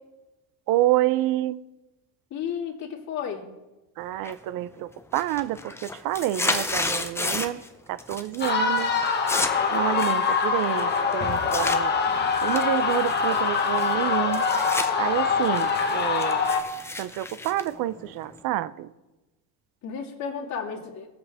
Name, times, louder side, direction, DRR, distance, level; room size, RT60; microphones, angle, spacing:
voice 1, 0.7-1.6 4.0-7.6 7.9-8.9 9.7-11.9 12.4-14.5 15.0-16.4 17.0-18.9, right 14 dB, 60° right, 0.5 m, -28 dB
voice 2, 2.3-3.5 19.8-21.1, left 7 dB, 45° left, 2.1 m, -33 dB
sound 1, 4.2-4.7 5.0-7.7 8.0-8.5 8.8-11.8 12.3-14.9 15.3-18.4, left 2 dB, 5° left, 0.5 m, -32 dB
sound 2, 8.4-16.6, left 5 dB, 25° left, 1.3 m, -24 dB
19.0 x 7.6 x 3.5 m
cardioid pair, 145°, 38 cm